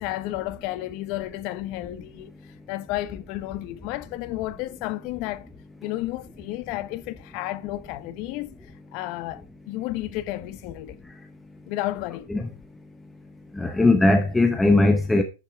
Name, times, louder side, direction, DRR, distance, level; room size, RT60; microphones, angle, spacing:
voice 1, 0.0-2.3 2.7-5.5 5.8-8.6 8.9-11.0 11.7-12.3, left 16 dB, 40° left, 0.8 m, -32 dB
voice 2, 13.6-15.2, left 2 dB, 5° left, 0.8 m, -19 dB
11.0 x 5.3 x 4.5 m
supercardioid pair, 150°, 0 cm